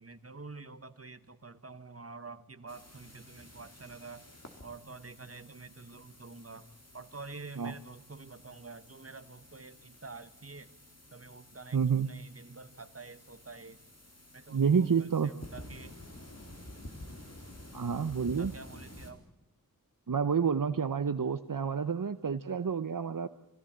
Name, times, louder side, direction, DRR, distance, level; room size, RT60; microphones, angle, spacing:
voice 1, 0.0-4.3 4.6-10.7 11.1-13.8 14.3-16.0 18.4-19.3, right 3 dB, 40° right, 12 dB, 1.2 m, -48 dB
sound 1, 2.7-19.1, left 1 dB, 45° left, 3.8 m, -51 dB
voice 2, 11.7-12.1 14.5-15.3 17.7-18.5 20.1-23.3, right 6 dB, 65° right, 11 dB, 0.7 m, -29 dB
24.0 x 16.0 x 8.7 m, 0.95 s
wide cardioid pair, 45°, 35 cm